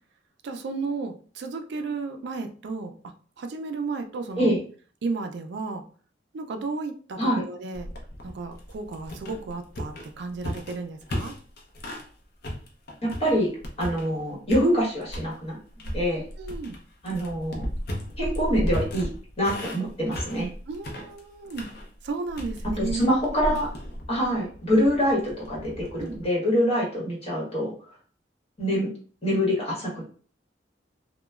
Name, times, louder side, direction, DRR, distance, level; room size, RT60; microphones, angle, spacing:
voice 1, 0.4-4.5 5.0-5.8 6.3-7.9 8.2-11.3 16.4-16.8 20.7-21.7 22.0-23.1 26.0-26.2, right 4 dB, 65° right, 6 dB, 0.4 m, -33 dB
sound 1, 7.7-12.1 12.4-14.2 14.5-15.3 15.8-26.3, equal, 55° left, 0.6 m, -35 dB
voice 2, 13.0-13.5 13.8-15.6 15.9-16.2 17.0-17.6 18.2-19.1 19.4-20.5 22.8-23.7 24.1-27.7 28.6-28.9 29.2-30.0, equal, 35° left, -4 dB, 1.3 m, -25 dB
2.9 x 2.1 x 2.3 m, 0.42 s
head